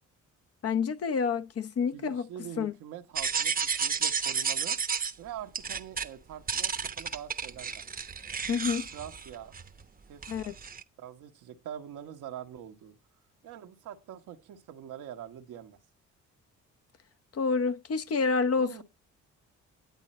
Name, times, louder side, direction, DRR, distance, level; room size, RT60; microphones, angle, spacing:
voice 1, 0.6-2.3 2.6-2.7 8.5-8.9 10.3-10.5 17.3-18.8, left 5 dB, 50° left, 1.0 m, -28 dB
voice 2, 1.9-4.8 5.2-7.8 8.9-9.5 10.1-10.3 11.0-13.0 13.4-15.8 18.6-18.8, right 10 dB, 85° right, 1.3 m, -44 dB
sound 1, 3.2-5.1 5.5-6.1 6.5-9.8 10.2-10.8, right 6 dB, 30° right, 0.9 m, -32 dB
10.5 x 8.5 x 4.3 m
cardioid pair, 90°, 30 cm